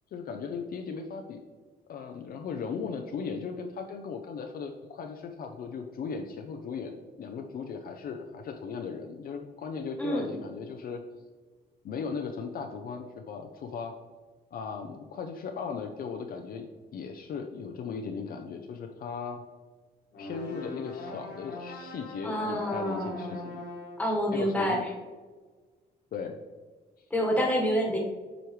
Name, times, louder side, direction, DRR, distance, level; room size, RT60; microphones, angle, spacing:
voice 1, 0.1-1.4 1.9-11.0 11.8-14.0 14.5-16.7 16.9-19.4 20.2-23.6 24.3-24.8 26.1-26.4, left 5 dB, 55° left, 4 dB, 0.6 m, -37 dB
sound 1, 20.1-24.1, left 2 dB, 80° left, 1.8 m, -41 dB
voice 2, 22.2-23.3 24.0-24.8 27.1-28.0, equal, 10° left, -2 dB, 1.4 m, -27 dB
7.7 x 5.0 x 3.1 m, 1.4 s
cardioid pair, 145°, 17 cm